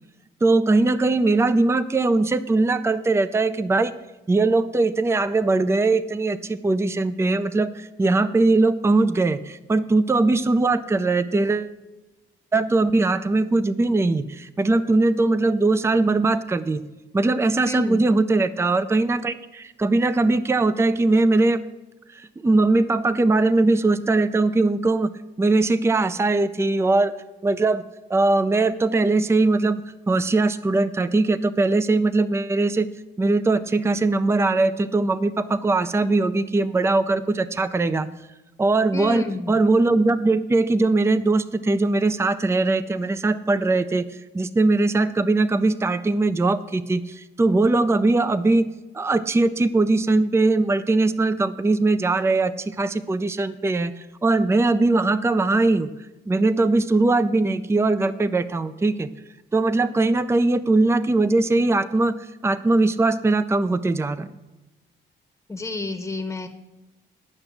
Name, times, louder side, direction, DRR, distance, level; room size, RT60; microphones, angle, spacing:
voice 1, 0.4-3.9 4.3-11.7 12.5-16.8 17.1-21.6 22.1-25.1 25.4-27.1 27.4-27.8 28.1-29.8 30.1-32.9 33.2-38.1 38.6-44.0 44.3-48.7 48.9-55.9 56.3-59.1 59.5-62.2 62.4-64.3, right 2 dB, 15° right, 13 dB, 0.5 m, -20 dB
voice 2, 17.7-18.0 38.9-39.5 65.5-66.5, left 3 dB, 15° left, 6 dB, 1.0 m, -30 dB
10.5 x 5.9 x 7.9 m, 1.0 s
cardioid pair, 90°, 20 cm